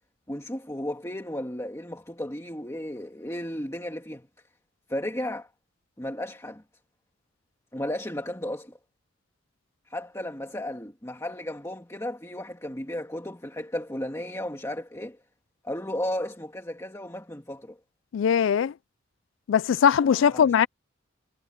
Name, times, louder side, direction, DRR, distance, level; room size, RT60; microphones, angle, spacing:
voice 1, 0.3-4.3 4.9-5.5 6.0-6.6 7.7-8.8 9.9-15.2 15.6-17.8 20.0-20.5, left 1 dB, 15° left, 2.1 m, -34 dB
voice 2, 18.1-18.7 19.5-20.7, left 7 dB, 70° left, 0.3 m, -20 dB
head